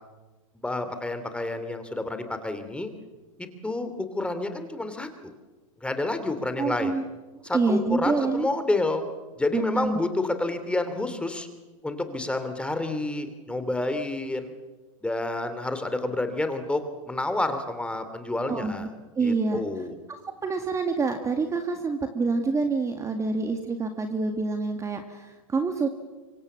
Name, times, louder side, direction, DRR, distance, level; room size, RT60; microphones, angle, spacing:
voice 1, 0.5-2.9 3.4-5.3 5.8-6.9 7.4-9.0 9.4-11.5 11.8-14.5 15.0-18.9 19.2-20.0, left 2 dB, 5° left, 9 dB, 2.8 m, -29 dB
voice 2, 6.6-7.0 7.5-8.5 9.5-10.0 18.5-18.9 19.2-19.6 20.4-25.9, right 4 dB, 15° right, 6 dB, 1.9 m, -27 dB
26.0 x 24.5 x 7.5 m, 1.2 s
hypercardioid pair, 120°, 18 cm